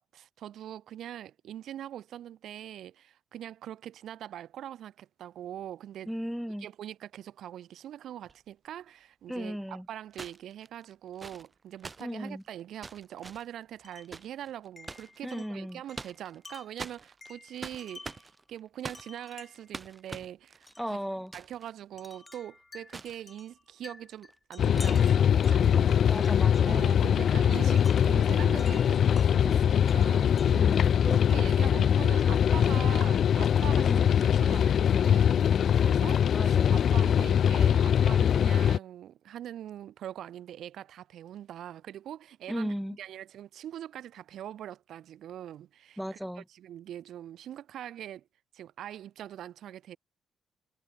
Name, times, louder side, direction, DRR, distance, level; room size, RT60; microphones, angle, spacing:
voice 1, 0.0-6.1 6.6-21.0 21.3-26.0 26.7-30.7 31.1-46.2 46.5-48.2 48.5-50.0, right 11 dB, 75° right, 3.3 m, -43 dB
voice 2, 6.1-6.7 9.3-9.9 12.0-12.4 15.2-15.8 20.8-21.3 26.1-26.9 30.5-31.0 33.7-34.2 36.3-36.8 42.5-43.0 46.0-46.4, equal, ahead, 2.4 m, -36 dB
sound 1, 8.2-8.3 10.1-15.2 15.7-16.5 16.8-21.7 22.0-22.1 22.9-23.2 24.1-24.3, right 3 dB, 25° right, 2.3 m, -45 dB
Wind chime, 13.8-14.2 14.8-18.3 18.9-19.8 20.7-20.9 22.0-26.9 27.8-29.3 29.9-31.4, left 3 dB, 20° left, 7.4 m, -51 dB
sound 2, 24.6-38.8, left 8 dB, 60° left, 0.3 m, -23 dB
cardioid pair, 90°, 0 cm